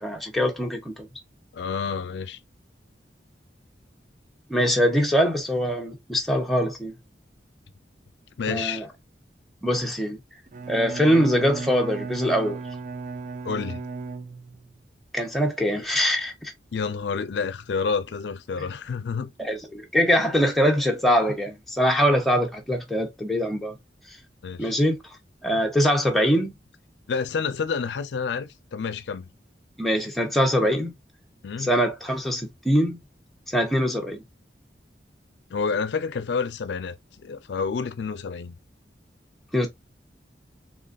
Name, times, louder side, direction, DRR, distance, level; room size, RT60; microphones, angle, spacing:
voice 1, 0.0-1.1 4.5-6.9 8.5-8.9 9.6-10.2 10.7-12.6 15.1-16.5 19.4-23.8 24.6-25.0 25.4-26.5 29.8-30.9 31.6-33.0 33.5-34.2 39.5-39.7, equal, ahead, 0.7 m, -23 dB
voice 2, 1.5-2.4 8.4-8.9 13.4-13.8 16.7-19.3 24.4-24.8 27.1-29.3 31.4-31.7 35.5-37.0 37.2-38.5, left 5 dB, 80° left, 0.4 m, -29 dB
Bowed string instrument, 10.5-14.7, right 4 dB, 45° right, 0.4 m, -35 dB
3.9 x 2.9 x 2.5 m
head